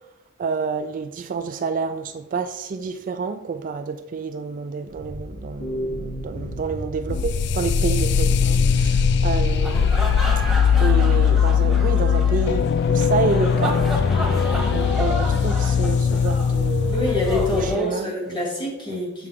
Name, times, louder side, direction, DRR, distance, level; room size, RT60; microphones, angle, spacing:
voice 1, 0.4-10.0 10.8-13.9 14.7-17.1 17.5-18.5 18.9-19.0, right 5 dB, 35° right, 0.3 m, -29 dB
sound 1, 4.9-9.6, equal, 80° left, 3.0 m, -34 dB
sound 2, 7.1-17.8, left 7 dB, 50° left, 0.3 m, -20 dB
sound 3, 9.5-18.5, equal, ahead, 1.3 m, -32 dB
voice 2, 16.9-19.3, left 1 dB, 20° left, 2.4 m, -25 dB
7.5 x 6.6 x 3.6 m
head